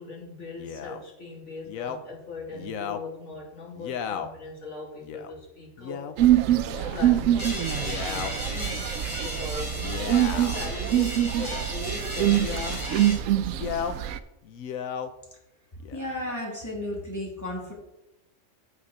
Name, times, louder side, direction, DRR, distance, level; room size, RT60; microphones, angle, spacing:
voice 1, 0.0-6.1 6.6-13.1, left 3 dB, 60° left, -1 dB, 2.7 m, -40 dB
Male speech man speaking, 0.6-1.0 1.7-2.0 2.5-3.0 3.8-4.3 5.0-5.3 5.8-6.1 6.6-7.2 7.7-8.3 9.7-10.6 11.3-11.7 12.3-12.8 13.5-14.0 14.4-15.1 15.8-16.3, left 8 dB, 85° left, 1.1 m, -35 dB
sound 1, 6.2-14.2, right 12 dB, 80° right, 1.0 m, -25 dB
sound 2, 7.4-13.1, equal, 35° left, 4.2 m, -35 dB
voice 2, 15.9-17.7, left 1 dB, 15° left, -4 dB, 3.0 m, -33 dB
7.5 x 6.6 x 6.4 m, 0.89 s
omnidirectional pair, 1.4 m